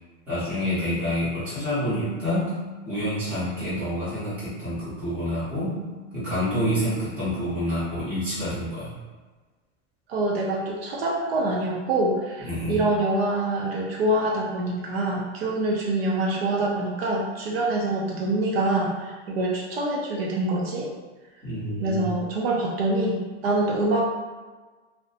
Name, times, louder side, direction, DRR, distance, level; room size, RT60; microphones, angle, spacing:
voice 1, 0.3-2.6 2.9-5.8 6.1-8.9 12.5-12.8 21.4-22.1, equal, 5° right, -13 dB, 0.6 m, -28 dB
voice 2, 10.1-20.9 21.8-24.0, right 2 dB, 55° right, -2 dB, 0.5 m, -25 dB
2.5 x 2.1 x 2.7 m, 1.3 s
supercardioid pair, 160°, 37 cm